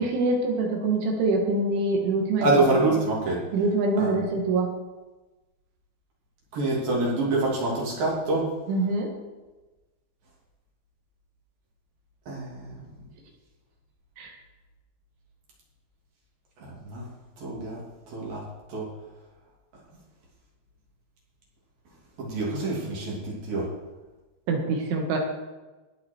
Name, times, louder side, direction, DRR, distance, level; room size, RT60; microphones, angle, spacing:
voice 1, 0.0-2.5 3.5-4.7 8.7-9.1 14.2-14.3 24.5-25.2, right 3 dB, 80° right, 2 dB, 4.4 m, -25 dB
voice 2, 2.4-3.4 4.0-4.2 6.5-8.5 12.3-12.8 16.6-17.1 17.4-17.8 18.1-18.4 18.7-18.9 22.2-23.7, right 2 dB, 55° right, -4 dB, 4.5 m, -26 dB
19.5 x 8.2 x 4.6 m, 1.2 s
omnidirectional pair, 5.4 m